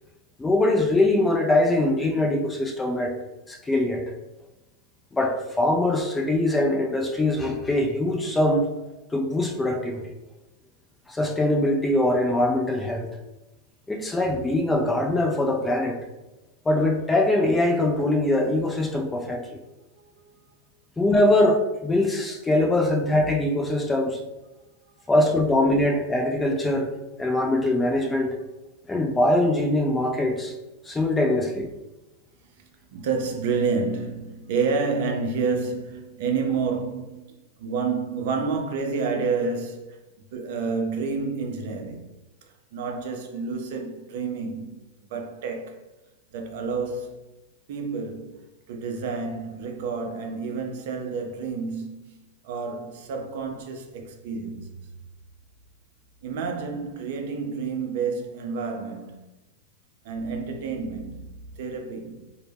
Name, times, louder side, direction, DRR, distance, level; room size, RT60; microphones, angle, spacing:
voice 1, 0.4-3.1 3.5-4.0 5.1-8.7 9.1-10.0 11.1-13.1 13.9-16.0 16.7-19.6 21.0-24.2 25.1-26.9 27.2-28.4 28.9-30.5 30.8-31.7, left 1 dB, 15° left, 0.4 m, -22 dB
voice 2, 19.9-20.3 32.5-32.6 32.9-40.0 40.3-42.2 42.5-44.8 45.1-45.8 46.3-47.3 47.7-52.2 52.4-54.9 56.2-59.4 60.0-62.2, right 4 dB, 65° right, 0.4 m, -29 dB
2.1 x 2.1 x 3.3 m
hypercardioid pair, 110°, 0 cm